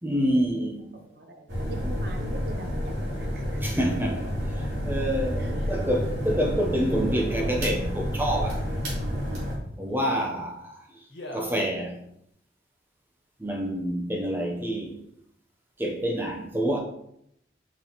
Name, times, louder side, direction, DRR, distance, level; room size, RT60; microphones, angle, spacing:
voice 1, 0.0-1.0 3.6-8.7 9.8-11.0 11.3-12.0 13.4-15.0 15.8-16.8, equal, 10° right, 0.8 m, -27 dB
voice 2, 0.9-3.8 5.4-5.5, right 2 dB, 60° right, 0.7 m, -43 dB
sound 1, 1.5-9.6, equal, 75° right, 2.8 m, -30 dB
Male speech man speaking, 4.0-4.4 5.5-5.9 7.0-7.6 8.5-8.9 9.9-10.4 11.1-11.6 12.3-12.4, left 1 dB, 80° left, 1.6 m, -44 dB
6.5 x 6.2 x 3.0 m
head